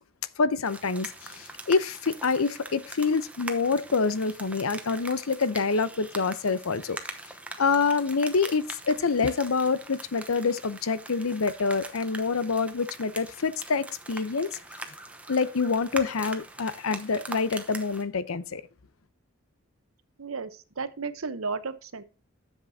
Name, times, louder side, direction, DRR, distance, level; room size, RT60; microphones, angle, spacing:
voice 1, 0.4-7.0 7.6-14.5 15.3-18.6, left 4 dB, 85° left, 0.7 m, -26 dB
sound 1, 0.6-18.0, right 2 dB, 5° right, 0.9 m, -42 dB
voice 2, 20.2-20.5 20.8-22.0, right 4 dB, 85° right, 0.9 m, -33 dB
11.0 x 7.4 x 2.7 m
head